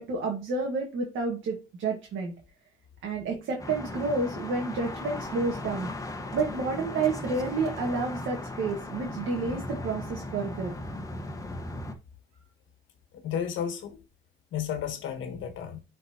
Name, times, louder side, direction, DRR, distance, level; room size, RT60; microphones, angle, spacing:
voice 1, 0.0-2.3 3.0-5.9 6.3-10.8, right 3 dB, 75° right, 1.6 m, -30 dB
sound 1, 3.6-11.9, left 2 dB, 15° left, 1.1 m, -37 dB
voice 2, 13.2-14.0 14.5-15.8, left 8 dB, 80° left, 1.3 m, -32 dB
9.5 x 4.2 x 2.8 m
cardioid pair, 90°, 20 cm